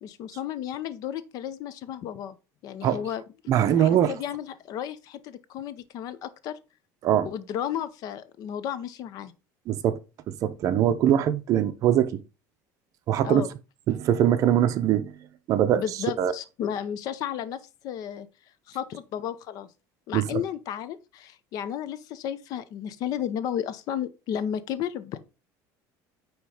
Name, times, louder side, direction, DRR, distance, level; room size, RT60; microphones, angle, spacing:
voice 1, 0.0-2.4 2.6-6.5 7.2-9.3 13.2-13.5 15.7-18.3 18.7-19.7 20.1-25.2, left 9 dB, 50° left, 0.7 m, -33 dB
voice 2, 3.5-4.2 7.0-7.3 9.7-10.0 10.3-12.2 13.1-13.5 13.9-15.1 15.5-15.8 16.2-16.3 20.1-20.4, right 10 dB, 45° right, 0.8 m, -22 dB
9.3 x 3.1 x 4.9 m
cardioid pair, 155°, 8 cm